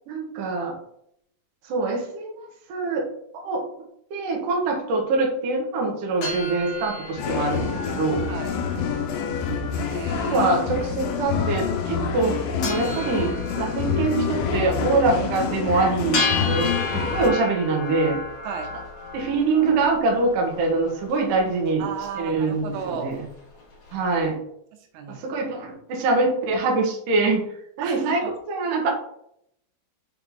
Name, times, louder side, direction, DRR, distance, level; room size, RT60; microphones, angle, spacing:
voice 1, 0.1-0.8 1.6-3.1 3.4-3.6 4.1-8.2 10.3-18.2 19.1-21.9 22.2-23.2 23.9-24.4 25.1-27.4 27.8-28.2 28.5-28.9, right 3 dB, 65° right, -1 dB, 2.2 m, -24 dB
sound 1, 6.2-24.1, left 3 dB, 50° left, 2.0 m, -35 dB
sound 2, 7.2-17.3, left 6 dB, 80° left, 3.0 m, -27 dB
voice 2, 9.9-10.5 18.4-18.7 21.8-23.2 24.7-25.2 27.8-28.4, right 6 dB, 80° right, 3 dB, 3.3 m, -34 dB
7.6 x 4.0 x 3.7 m, 0.72 s
omnidirectional pair, 5.7 m